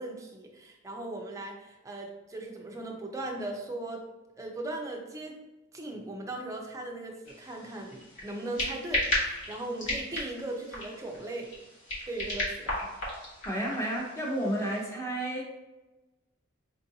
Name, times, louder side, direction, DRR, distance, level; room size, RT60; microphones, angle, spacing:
voice 1, 0.0-4.0 4.4-5.4 5.7-11.5 12.1-13.0, right 2 dB, 15° right, 0 dB, 0.5 m, -38 dB
sound 1, 7.2-14.8, left 1 dB, 60° left, 1.1 m, -35 dB
voice 2, 13.4-15.4, right 1 dB, 15° left, -2 dB, 0.8 m, -31 dB
4.5 x 2.5 x 2.7 m, 1.1 s
head